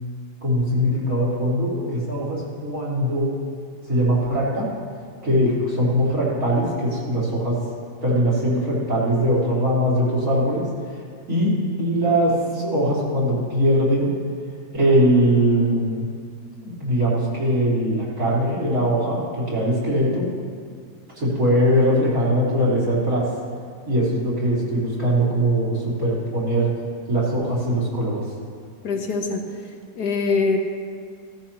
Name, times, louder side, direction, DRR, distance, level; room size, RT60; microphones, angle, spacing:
voice 1, 0.4-3.3 3.9-4.6 5.2-7.6 8.0-10.7 11.3-14.1 14.7-16.1 16.6-20.3 21.1-23.3 23.9-26.7 27.1-28.2, equal, 60° right, -8 dB, 4.1 m, -21 dB
voice 2, 28.8-30.6, left 4 dB, 70° left, 2 dB, 1.8 m, -24 dB
16.5 x 13.5 x 3.0 m, 2.1 s
omnidirectional pair, 1.8 m